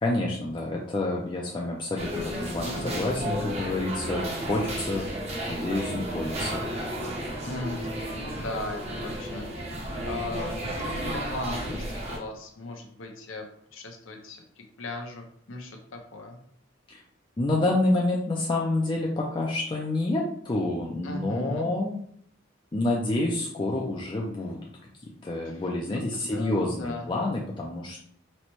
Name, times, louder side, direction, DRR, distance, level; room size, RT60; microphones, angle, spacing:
voice 1, 0.0-5.1 5.5-6.6 16.9-17.0 17.4-21.9 22.7-24.6 25.2-28.0, left 2 dB, 25° left, -2 dB, 0.4 m, -28 dB
sound 1, 2.0-12.2, equal, 35° right, 0.7 m, -33 dB
voice 2, 2.6-3.0 7.4-7.8 8.1-9.8 10.1-13.4 13.7-14.4 14.8-16.4 21.0-21.7 25.4-25.5 25.9-27.1, left 2 dB, 80° left, 3 dB, 0.7 m, -37 dB
4.1 x 2.1 x 3.0 m, 0.65 s
head